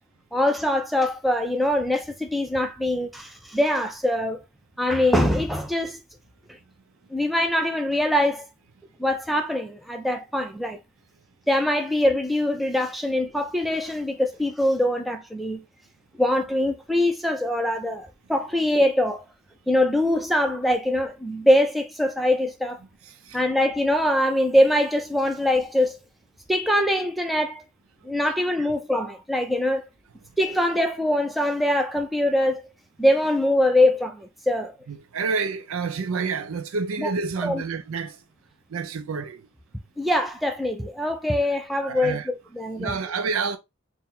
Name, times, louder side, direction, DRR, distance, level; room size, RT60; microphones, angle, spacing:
voice 1, 0.3-4.4 4.8-6.0 7.1-8.5 9.0-10.8 11.5-15.6 16.2-19.2 19.7-22.8 23.3-26.0 26.5-27.6 28.0-29.8 30.4-32.6 33.0-34.7 37.0-37.1 37.4-37.6 40.0-42.9, left 1 dB, ahead, 0.5 m, -23 dB
voice 2, 23.1-23.4 28.6-28.7 34.9-38.2 38.7-39.5 41.8-42.3 42.8-43.6, right 4 dB, 70° right, 0.4 m, -29 dB
4.4 x 2.2 x 3.7 m
head